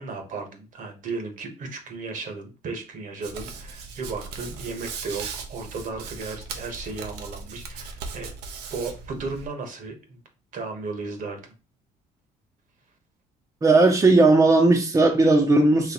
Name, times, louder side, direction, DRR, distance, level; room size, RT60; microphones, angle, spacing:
voice 1, 0.0-8.3 8.7-10.2 10.5-11.5, right 4 dB, 50° right, 1.1 m, -35 dB
Hands, 3.2-9.5, right 5 dB, 85° right, 0.7 m, -38 dB
voice 2, 13.6-15.9, right 2 dB, 20° right, 0.7 m, -17 dB
4.1 x 3.1 x 2.9 m
cardioid pair, 110°, 17 cm